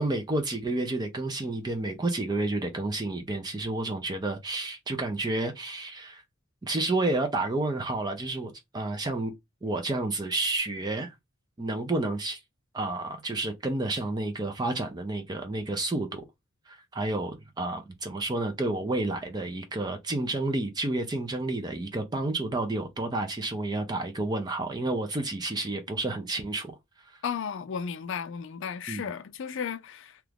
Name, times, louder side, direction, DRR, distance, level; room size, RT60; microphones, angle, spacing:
voice 1, 0.0-6.2 6.6-9.3 9.6-11.1 11.6-12.4 12.7-16.2 16.7-26.8 27.1-27.2 28.9-29.1, right 2 dB, 20° right, 0.4 m, -30 dB
voice 2, 27.2-30.2, left 7 dB, 60° left, 0.4 m, -34 dB
2.9 x 2.4 x 3.3 m
head